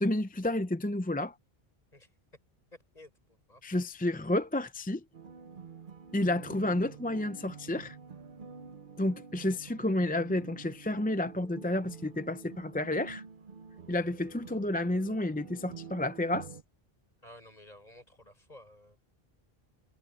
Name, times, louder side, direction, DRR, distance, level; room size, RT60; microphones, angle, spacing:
voice 1, 0.0-1.3 3.6-5.0 6.1-8.0 9.0-13.2 13.9-16.5, left 1 dB, 10° left, 0.5 m, -30 dB
voice 2, 2.7-3.6 17.2-19.0, left 1 dB, 40° left, 6.8 m, -54 dB
sound 1, 5.1-16.6, right 6 dB, 55° right, 1.1 m, -48 dB
omnidirectional pair, 1.0 m